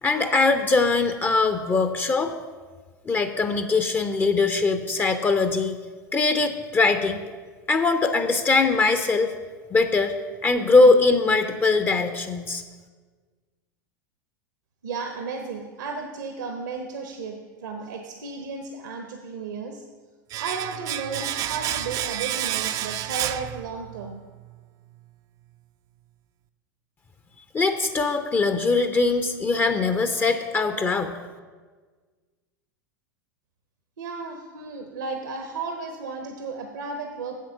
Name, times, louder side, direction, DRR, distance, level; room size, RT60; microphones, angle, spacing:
voice 1, 0.0-2.3 3.1-5.8 6.1-7.2 7.7-9.3 9.7-10.1 10.4-12.6 27.5-31.1, left 3 dB, 20° left, 8 dB, 0.6 m, -21 dB
voice 2, 14.8-19.8 20.4-24.2 34.0-37.4, right 4 dB, 65° right, 5 dB, 0.9 m, -34 dB
Domestic sounds home sounds, 20.3-24.1 24.4-24.5, right 12 dB, 35° right, 0.4 m, -30 dB
8.4 x 7.7 x 5.7 m, 1.5 s
figure-of-eight pair, 85°, 10 cm